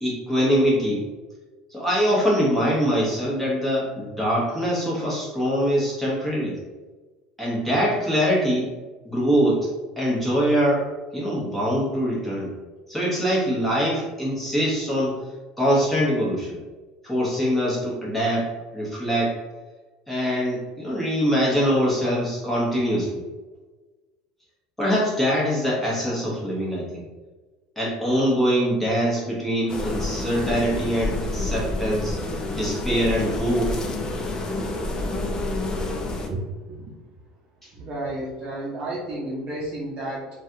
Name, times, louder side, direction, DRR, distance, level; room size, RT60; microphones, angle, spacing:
voice 1, 0.0-1.0 1.7-6.6 7.4-8.7 9.0-9.7 10.0-10.9 11.1-12.5 12.9-15.1 15.6-16.5 17.0-19.4 20.1-23.2 24.8-27.0 27.8-32.2 32.5-33.7, equal, 5° left, -6 dB, 1.1 m, -23 dB
sound 1, 29.7-36.3, left 2 dB, 25° left, 0.5 m, -28 dB
voice 2, 36.3-36.9 37.7-40.3, right 1 dB, 50° right, -5 dB, 0.7 m, -32 dB
3.2 x 2.4 x 2.7 m, 1.3 s
supercardioid pair, 105°, 3 cm